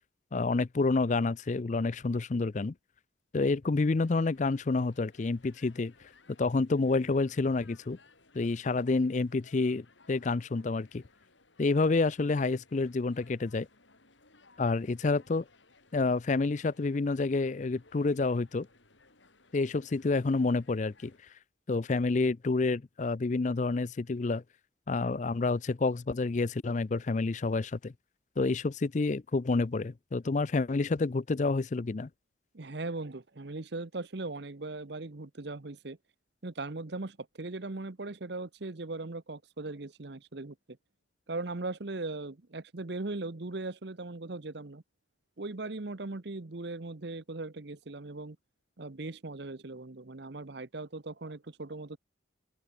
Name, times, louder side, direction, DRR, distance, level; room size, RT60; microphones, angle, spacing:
voice 1, 0.3-2.7 3.3-5.9 6.4-8.0 8.3-11.0 11.6-13.7 14.6-15.4 15.9-18.7 19.5-21.1 21.7-24.4 24.9-27.9 28.4-32.1, left 3 dB, 40° left, 0.4 m, -28 dB
sound 1, 4.0-21.2, left 3 dB, 70° left, 5.3 m, -62 dB
voice 2, 32.5-36.0 36.4-40.6 41.3-44.8 45.4-48.4 48.8-52.0, right 2 dB, 55° right, 0.9 m, -39 dB
open air
head